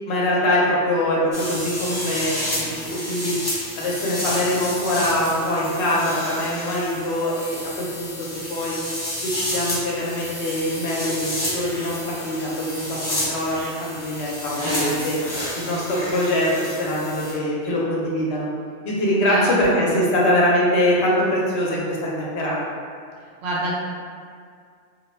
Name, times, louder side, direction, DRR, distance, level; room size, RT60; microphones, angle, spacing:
voice 1, 0.1-3.4 3.8-8.8 9.2-15.2 15.5-18.5 18.8-22.6, left 1 dB, 75° left, -4 dB, 0.9 m, -23 dB
sound 1, 1.3-17.3, left 1 dB, 30° left, 0.4 m, -30 dB
voice 2, 19.3-19.9 23.4-23.7, right 1 dB, 70° right, -5 dB, 0.8 m, -26 dB
2.3 x 2.0 x 3.0 m, 2.2 s
omnidirectional pair, 1.2 m